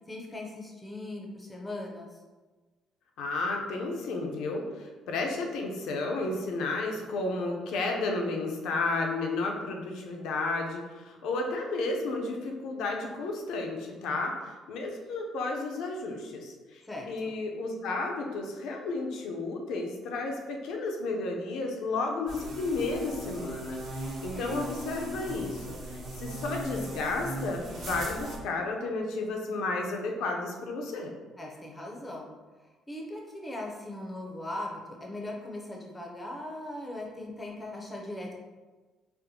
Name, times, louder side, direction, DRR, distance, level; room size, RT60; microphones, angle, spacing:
voice 1, 0.1-2.1 16.8-17.3 24.0-24.7 31.4-32.3 32.9-38.3, left 1 dB, 15° left, -1 dB, 0.5 m, -39 dB
voice 2, 3.2-31.1, left 3 dB, 75° left, 2 dB, 0.5 m, -32 dB
sound 1, 22.3-28.4, right 1 dB, 55° right, 1.0 m, -38 dB
4.2 x 2.1 x 2.7 m, 1.3 s
cardioid pair, 145°, 0 cm